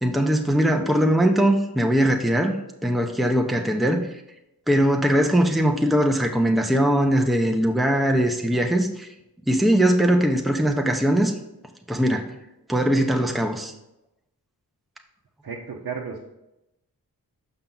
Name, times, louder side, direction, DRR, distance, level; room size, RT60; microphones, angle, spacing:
voice 1, 0.0-2.6 2.8-4.1 4.7-9.1 9.5-11.3 11.9-12.2 12.7-13.7, equal, ahead, 3 dB, 0.8 m, -20 dB
voice 2, 15.4-16.3, right 5 dB, 65° right, -3 dB, 0.9 m, -33 dB
5.9 x 5.7 x 3.9 m, 0.89 s
cardioid pair, 50°, 37 cm